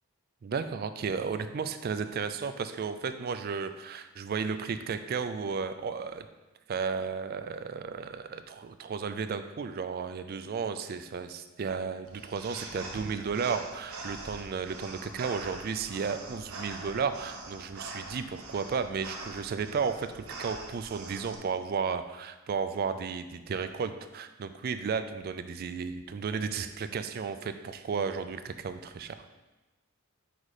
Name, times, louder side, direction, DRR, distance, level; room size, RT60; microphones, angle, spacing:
voice 1, 0.4-6.3 6.7-29.2, right 5 dB, 45° right, 10 dB, 0.3 m, -33 dB
sound 1, 12.1-21.4, right 2 dB, 85° right, 0.9 m, -44 dB
5.0 x 4.1 x 4.8 m, 1.1 s
head